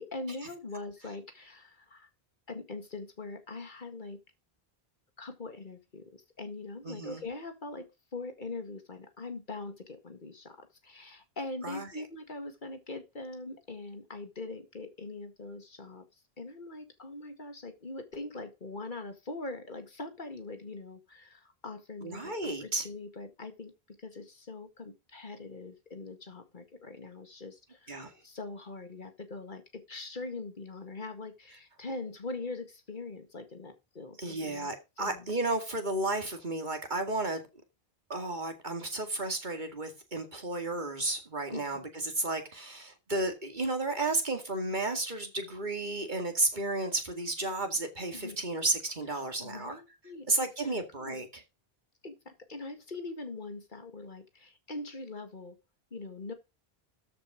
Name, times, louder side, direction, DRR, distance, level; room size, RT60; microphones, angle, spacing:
voice 1, 0.0-2.1 2.5-4.2 5.2-16.0 16.4-34.7 35.0-35.3 41.5-41.8 48.1-48.4 49.1-50.3 50.6-51.2 52.0-55.6 55.9-56.3, left 3 dB, 50° left, 2.0 m, -42 dB
voice 2, 6.8-7.2 11.6-12.0 22.0-22.9 27.9-28.1 34.2-37.4 38.1-49.8 50.3-51.4, right 2 dB, 50° right, 2.4 m, -33 dB
13.5 x 5.6 x 5.0 m
omnidirectional pair, 1.0 m